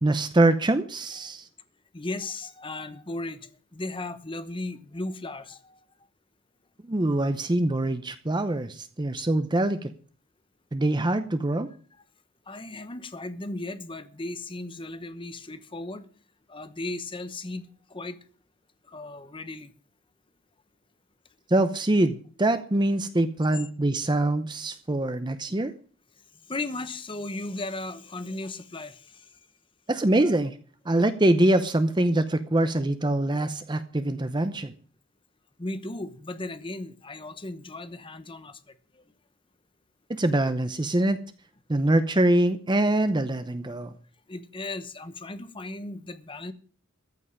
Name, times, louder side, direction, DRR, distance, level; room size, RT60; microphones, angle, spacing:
voice 1, 0.0-1.5 6.9-9.9 10.7-11.7 21.5-25.7 29.9-30.6 30.9-34.7 40.1-41.2 41.7-43.9, right 1 dB, 20° right, 0.7 m, -24 dB
voice 2, 1.9-5.8 12.5-16.1 16.5-18.2 18.9-19.7 26.5-29.2 35.6-39.0 44.3-46.5, left 2 dB, 25° left, 1.0 m, -36 dB
14.5 x 5.5 x 9.6 m
head